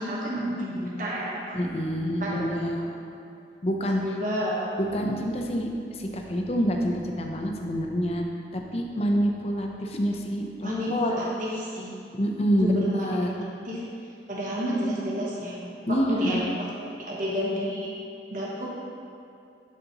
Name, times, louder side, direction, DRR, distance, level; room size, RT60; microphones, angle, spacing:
voice 1, 0.0-1.6 2.0-2.6 4.0-4.7 10.6-11.9 12.6-13.2 13.6-13.8 14.3-15.6 15.9-16.7 17.0-17.9 18.3-18.7, equal, 45° right, -5 dB, 1.1 m, -30 dB
voice 2, 1.5-2.8 3.6-4.0 4.8-8.2 8.5-11.1 12.1-13.3 15.9-16.4, equal, 35° left, 2 dB, 0.6 m, -27 dB
11.5 x 4.1 x 2.9 m, 2.5 s
head